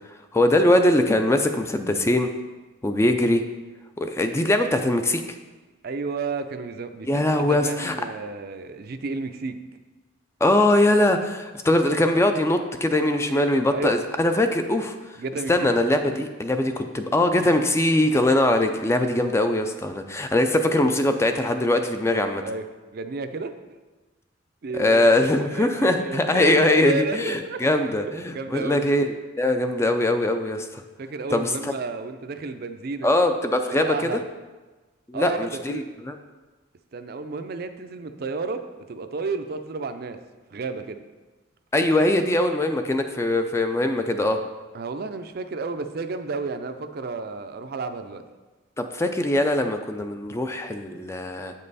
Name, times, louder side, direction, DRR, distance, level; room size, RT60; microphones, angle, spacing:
voice 1, 0.3-2.3 2.8-3.4 4.0-5.2 7.1-8.0 10.4-15.2 15.5-22.4 24.7-30.8 31.3-31.7 33.0-34.2 35.1-36.2 41.7-44.4 48.8-51.5, left 1 dB, 15° left, 7 dB, 0.4 m, -22 dB
voice 2, 5.8-9.6 13.7-14.0 15.2-15.5 22.4-22.6 22.9-23.5 24.6-27.6 28.0-28.8 31.0-33.1 33.7-34.2 35.1-35.4 35.7-35.8 36.9-38.6 38.9-40.2 40.5-41.0 44.7-48.2, right 4 dB, 50° right, 8 dB, 0.5 m, -32 dB
8.3 x 5.4 x 4.0 m, 1.2 s
head